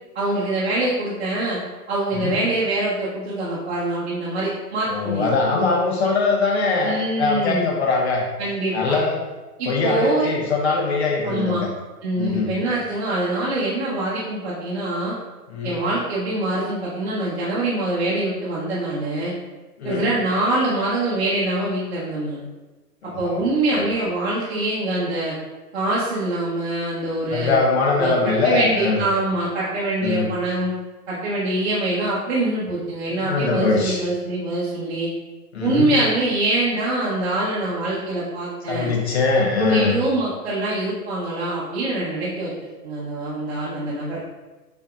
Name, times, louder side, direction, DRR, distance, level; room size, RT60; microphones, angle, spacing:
voice 1, 0.1-1.6 1.9-5.3 6.8-7.7 8.4-9.0 9.6-10.3 11.2-11.6 12.0-15.1 15.6-19.3 19.8-22.4 23.2-25.3 25.7-27.6 28.0-28.1 28.4-30.7 31.1-35.1 35.6-38.9 39.6-44.2, right 2 dB, 40° right, -7 dB, 0.9 m, -24 dB
voice 2, 4.9-8.2 8.7-9.2 9.7-11.7 12.2-12.5 15.5-15.8 19.8-20.1 23.0-23.4 23.7-23.8 27.3-29.0 30.0-30.3 33.1-34.0 35.5-35.9 38.7-39.9, left 3 dB, 40° left, -1 dB, 0.9 m, -22 dB
6.7 x 2.8 x 2.4 m, 1.2 s
hypercardioid pair, 145°, 48 cm